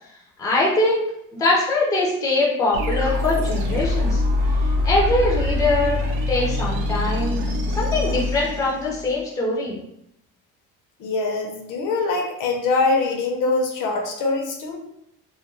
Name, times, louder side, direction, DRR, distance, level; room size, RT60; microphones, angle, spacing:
voice 1, 0.4-1.0 1.4-4.2 4.8-6.0 6.3-7.4 7.8-9.8, left 2 dB, 10° left, -4 dB, 0.4 m, -22 dB
sound 1, 2.7-9.2, left 2 dB, 70° right, 0.6 m, -24 dB
voice 2, 11.0-14.8, left 3 dB, 65° left, 2 dB, 0.6 m, -23 dB
2.4 x 2.2 x 3.0 m, 0.76 s
cardioid pair, 160°, 34 cm